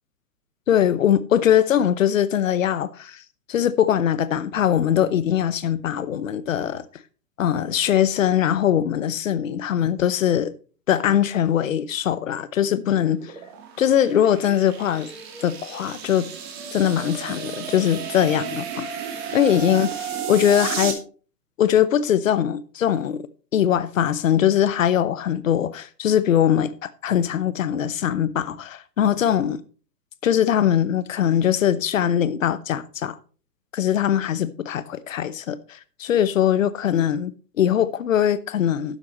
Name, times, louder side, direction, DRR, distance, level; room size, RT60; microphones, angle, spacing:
voice 1, 0.7-3.2 3.5-6.8 7.4-10.5 10.9-13.3 13.8-15.1 15.4-16.3 16.7-18.9 19.3-21.0 21.6-23.2 23.5-29.6 30.2-33.2 33.7-39.0, left 10 dB, 50° left, 1.0 m, -21 dB
sound 1, 12.9-20.9, right 7 dB, 40° right, 2.6 m, -33 dB
12.0 x 9.5 x 3.1 m
figure-of-eight pair, 120°, 49 cm